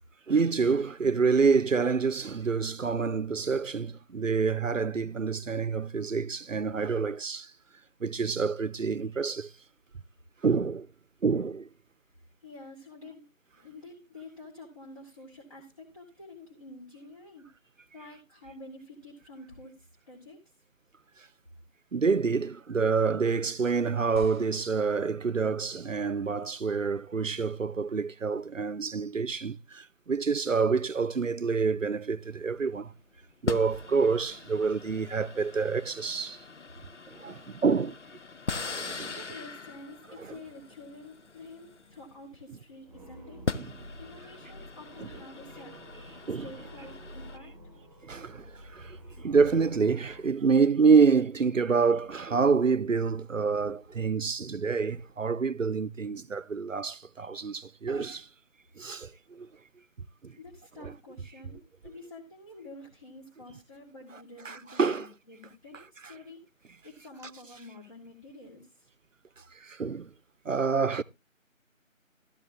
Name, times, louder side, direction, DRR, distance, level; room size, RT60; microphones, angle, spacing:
voice 1, 0.3-7.5 8.0-9.5 10.4-10.9 11.2-11.7 21.9-32.9 33.4-36.4 37.1-38.0 38.6-39.1 40.2-40.3 43.5-43.7 45.0-45.1 46.3-46.5 48.0-58.3 58.8-59.5 60.2-60.4 60.8-60.9 64.4-65.1 69.6-70.1 70.4-71.0, right 5 dB, 70° right, 0.7 m, -27 dB
voice 2, 12.4-13.3 13.6-17.5 17.9-20.4 39.1-43.4 44.0-45.7 46.4-47.5 60.4-66.4 66.8-68.9, left 2 dB, 25° left, 2.2 m, -48 dB
sound 1, 24.2-25.7 26.4-26.5, equal, 20° right, 1.8 m, -46 dB
sound 2, 32.2-32.5 33.5-42.5 43.2-47.4, left 4 dB, 60° left, 0.7 m, -40 dB
sound 3, 42.9-50.2, right 1 dB, ahead, 2.6 m, -49 dB
13.5 x 12.0 x 2.4 m
figure-of-eight pair, 170°, 40 cm